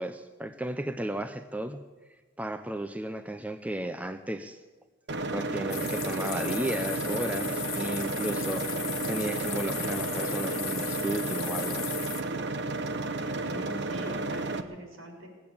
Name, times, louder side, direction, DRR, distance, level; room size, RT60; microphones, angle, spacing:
voice 1, 0.0-1.8 2.4-4.6 5.3-11.9, right 1 dB, 5° right, 8 dB, 0.5 m, -34 dB
sound 1, 5.1-14.6, right 2 dB, 55° right, 0.9 m, -32 dB
sound 2, 5.7-12.2, left 14 dB, 85° left, 1.1 m, -37 dB
voice 2, 13.4-15.3, equal, 75° right, 1 dB, 4.2 m, -42 dB
19.0 x 8.6 x 8.7 m, 1.3 s
head